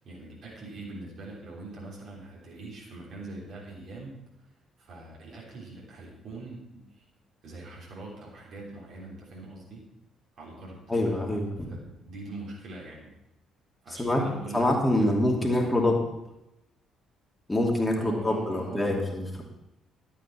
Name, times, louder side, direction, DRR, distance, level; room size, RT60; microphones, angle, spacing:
voice 1, 0.0-4.2 4.8-7.0 7.4-9.9 10.4-13.1 13.8-15.8 17.9-18.9, right 2 dB, 55° right, -5 dB, 3.3 m, -43 dB
voice 2, 10.9-11.5 14.0-14.2 14.5-16.0 17.5-19.4, left 1 dB, 15° left, 0 dB, 2.7 m, -25 dB
12.0 x 8.7 x 4.6 m, 0.89 s
figure-of-eight pair, 45°, 0 cm